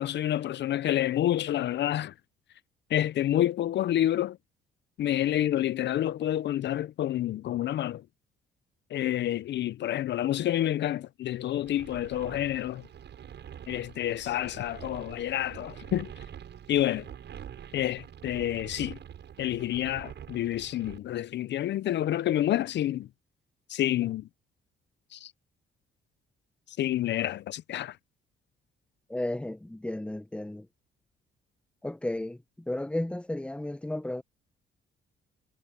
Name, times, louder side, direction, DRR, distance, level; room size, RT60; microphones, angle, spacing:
voice 1, 0.0-2.1 2.9-4.4 5.0-8.0 8.9-12.8 13.7-16.1 16.7-17.1 17.7-19.0 19.4-23.1 23.7-24.3 25.1-25.3 26.7-28.0, left 12 dB, 60° left, 0.5 m, -28 dB
sound 1, 11.7-21.0, right 9 dB, 65° right, 7.5 m, -45 dB
voice 2, 29.1-30.7 31.8-34.2, left 1 dB, 5° left, 0.9 m, -33 dB
cardioid pair, 90°, 20 cm